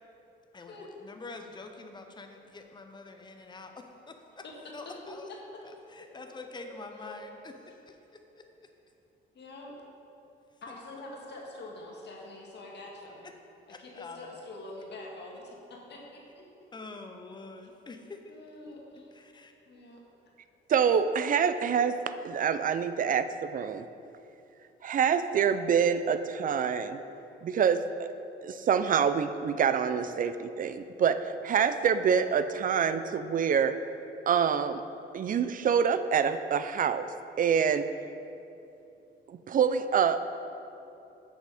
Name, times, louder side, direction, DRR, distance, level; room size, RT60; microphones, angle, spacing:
voice 1, 0.5-4.4 4.7-5.3 5.6-7.5 7.9-8.4 13.2-13.3 13.7-14.4 16.7-18.3 19.0-19.5, left 3 dB, 20° left, 5 dB, 0.8 m, -46 dB
voice 2, 6.2-6.7 6.9-7.1 9.3-9.7 10.6-13.3 13.7-16.4 18.3-19.1 19.7-20.0, left 2 dB, 60° left, -2 dB, 1.8 m, -45 dB
voice 3, 20.7-22.0 22.2-23.9 24.8-27.0 27.4-28.1 28.4-33.8 34.3-34.8 35.1-37.1 37.4-37.9 39.3-40.2, right 7 dB, 45° right, 11 dB, 0.5 m, -26 dB
7.6 x 6.6 x 4.9 m, 2.8 s
cardioid pair, 90°, 20 cm